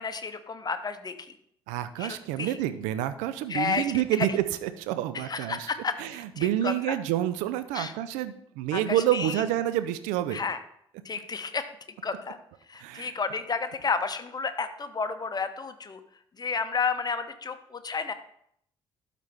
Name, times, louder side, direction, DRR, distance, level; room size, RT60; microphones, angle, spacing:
voice 1, 0.0-1.4 2.0-2.6 3.5-3.9 4.2-4.3 5.1-6.7 7.7-7.9 8.7-9.4 10.3-10.6 11.0-11.6 12.0-12.4 12.7-16.0 16.4-18.1, left 5 dB, 30° left, 9 dB, 0.9 m, -31 dB
voice 2, 1.7-5.7 6.0-10.4 12.8-13.1, right 12 dB, 70° right, 12 dB, 0.5 m, -28 dB
12.5 x 4.2 x 3.5 m, 0.69 s
figure-of-eight pair, 45°, 13 cm